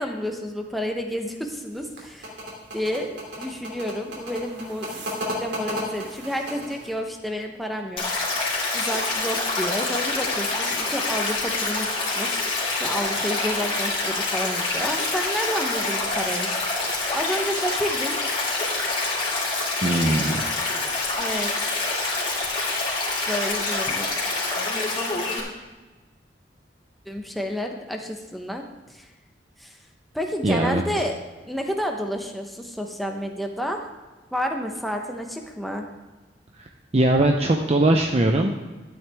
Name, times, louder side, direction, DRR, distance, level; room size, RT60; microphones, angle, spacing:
voice 1, 0.0-2.4 2.7-5.0 5.3-8.0 8.7-12.4 12.8-16.5 17.1-18.1 21.2-21.7 23.3-24.1 27.1-28.6 28.9-29.1 29.6-29.8 30.1-31.2 31.4-33.9 34.3-35.8, equal, ahead, 2 dB, 1.0 m, -30 dB
sound 1, 1.7-6.9, equal, 70° right, 2.8 m, -33 dB
Stream, 8.0-25.4, left 3 dB, 30° left, 2.8 m, -26 dB
voice 2, 19.8-20.4 30.4-30.8 36.5-38.6, right 1 dB, 35° right, 3 dB, 0.6 m, -21 dB
12.5 x 9.1 x 3.5 m, 1.2 s
head